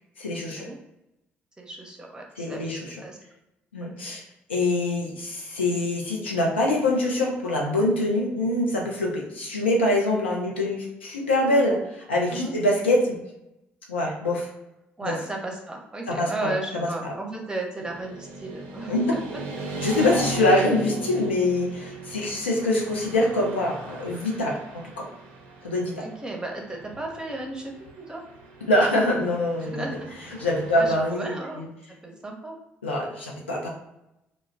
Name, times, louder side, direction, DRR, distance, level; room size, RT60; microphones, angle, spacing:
voice 1, 0.2-0.7 2.4-3.0 3.7-4.2 4.5-13.2 13.9-14.5 15.0-15.1 16.1-16.5 16.8-16.9 18.9-19.1 19.8-25.1 25.6-25.9 28.7-29.8 30.4-31.7 32.8-33.7, left 1 dB, 80° left, -2 dB, 0.5 m, -24 dB
voice 2, 1.6-3.2 3.8-3.9 12.3-12.5 15.0-19.4 21.3-21.4 26.0-28.2 29.6-30.4 30.7-31.6 31.9-32.6, right 2 dB, 15° right, 0 dB, 0.7 m, -35 dB
Motorcycle / Traffic noise roadway noise, 17.8-30.9, right 3 dB, 65° right, 0.5 m, -38 dB
2.2 x 2.0 x 3.3 m, 0.88 s
figure-of-eight pair, 45°, 6 cm